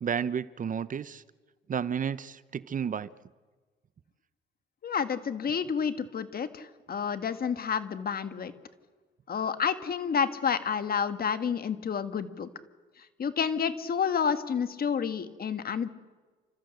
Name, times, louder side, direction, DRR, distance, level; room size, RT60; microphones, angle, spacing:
voice 1, 0.0-1.2 1.7-3.1, right 7 dB, 40° right, 17 dB, 0.7 m, -31 dB
voice 2, 4.8-8.5 9.3-12.5 13.0-15.9, left 7 dB, 50° left, 10 dB, 1.6 m, -30 dB
29.5 x 14.0 x 7.8 m, 1.4 s
cardioid pair, 90°, 20 cm